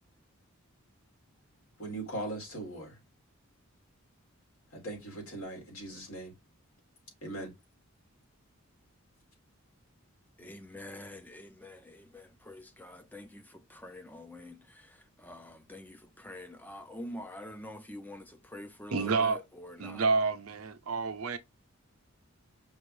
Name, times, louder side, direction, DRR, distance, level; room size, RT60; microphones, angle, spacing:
voice 1, 1.8-2.9 4.7-6.3 7.2-7.5 10.4-10.5, right 1 dB, 75° left, 2.5 m, -39 dB
voice 2, 10.4-20.0, left 1 dB, 10° left, 0.5 m, -46 dB
voice 3, 18.9-19.4 19.8-21.4, right 4 dB, 80° right, 0.7 m, -29 dB
5.4 x 2.6 x 3.2 m
head